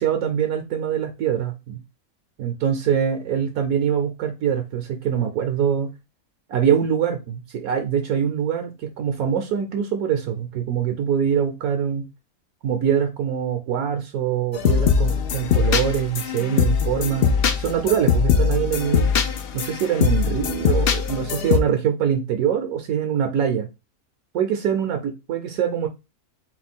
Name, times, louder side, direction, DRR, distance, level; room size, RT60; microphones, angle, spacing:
voice 1, 0.0-1.8 2.4-5.9 6.5-12.1 12.6-19.1 19.5-23.7 24.3-25.9, right 8 dB, 70° right, 5 dB, 1.1 m, -24 dB
sound 1, 14.5-21.6, left 6 dB, 80° left, 0.5 m, -21 dB
4.4 x 2.2 x 4.2 m, 0.26 s
omnidirectional pair, 1.7 m